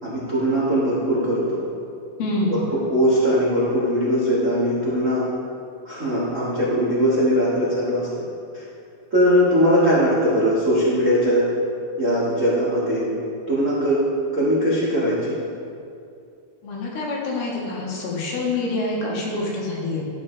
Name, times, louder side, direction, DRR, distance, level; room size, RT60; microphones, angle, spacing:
voice 1, 0.0-1.6 2.7-5.2 5.8-8.2 8.5-8.6 9.1-11.5 12.0-13.1 13.5-14.0 14.3-15.4, equal, 50° right, -7 dB, 0.9 m, -20 dB
voice 2, 2.2-2.7 16.6-20.0, left 2 dB, 80° left, -3 dB, 3.5 m, -26 dB
13.5 x 7.3 x 3.3 m, 2.4 s
omnidirectional pair, 4.4 m